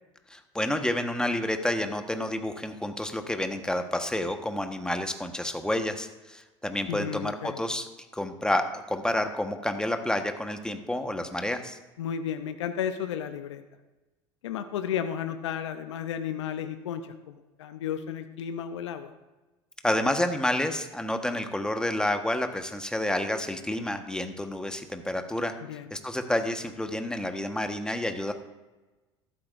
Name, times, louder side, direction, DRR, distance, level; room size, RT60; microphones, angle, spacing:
voice 1, 0.3-7.9 8.1-11.8 19.8-25.5 25.9-28.3, left 1 dB, 5° left, 6 dB, 1.4 m, -29 dB
voice 2, 6.9-7.6 12.0-13.6 14.4-19.1 25.6-25.9, left 8 dB, 80° left, 9 dB, 0.7 m, -33 dB
13.5 x 12.5 x 2.6 m, 1.1 s
hypercardioid pair, 70°, 15 cm